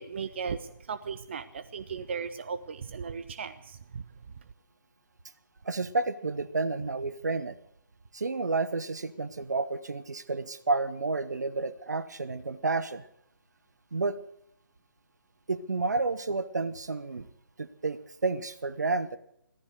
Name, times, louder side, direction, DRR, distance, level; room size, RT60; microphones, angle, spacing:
voice 1, 0.0-4.0, right 6 dB, 35° right, 12 dB, 0.7 m, -37 dB
voice 2, 5.6-7.6 8.1-13.0 13.9-14.2 15.5-17.3 17.6-19.2, right 3 dB, 55° right, 12 dB, 1.2 m, -30 dB
15.5 x 14.5 x 6.5 m, 0.73 s
figure-of-eight pair, 145°, 11 cm